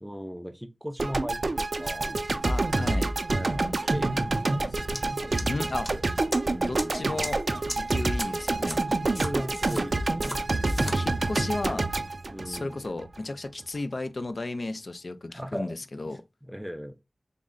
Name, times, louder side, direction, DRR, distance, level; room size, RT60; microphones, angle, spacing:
voice 1, 0.0-2.5 3.3-5.5 6.5-7.1 8.9-10.5 12.3-12.8 15.3-15.7 16.1-16.2 16.5-17.0, equal, 5° right, 0.4 m, -38 dB
sound 1, 1.0-13.2, right 2 dB, 65° right, 0.4 m, -27 dB
voice 2, 2.4-3.1 5.5-5.9 6.7-7.4 7.7-8.8 10.8-11.9 12.5-16.2, left 2 dB, 65° left, 0.3 m, -34 dB
sound 2, 4.9-5.0 5.4-5.9 6.3-6.4 6.8-6.9 7.2-7.3 7.7-7.8 8.2-8.3 8.7-8.8 9.2-9.8 10.2-10.4 10.7-11.0, equal, 20° left, 0.9 m, -35 dB
3.6 x 2.1 x 3.6 m
wide cardioid pair, 55°, 0 cm